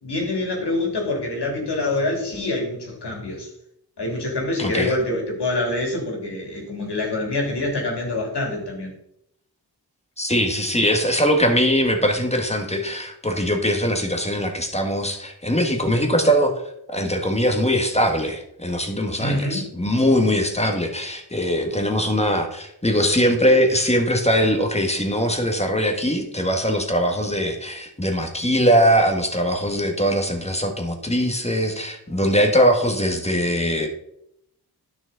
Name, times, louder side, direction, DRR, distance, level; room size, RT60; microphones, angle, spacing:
voice 1, 0.0-3.5 4.0-8.9 19.2-19.7, left 2 dB, 75° left, 0 dB, 2.8 m, -25 dB
voice 2, 4.6-4.9 10.2-16.6 16.9-33.9, equal, 15° left, 4 dB, 1.6 m, -21 dB
10.5 x 6.1 x 3.9 m, 0.75 s
wide cardioid pair, 70°, 41 cm